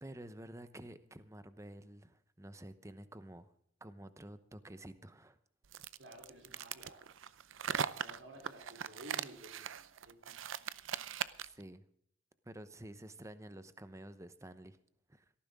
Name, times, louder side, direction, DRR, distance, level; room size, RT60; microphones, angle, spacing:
voice 1, 0.0-3.5 3.8-5.4 11.5-11.8 12.4-14.8 15.1-15.2, right 1 dB, 15° right, 12 dB, 0.9 m, -50 dB
sound 1, 5.7-11.6, right 8 dB, 85° right, 0.6 m, -40 dB
voice 2, 6.0-7.0 8.0-10.4, right 1 dB, 65° right, 3 dB, 3.6 m, -54 dB
17.5 x 14.5 x 3.7 m, 0.67 s
head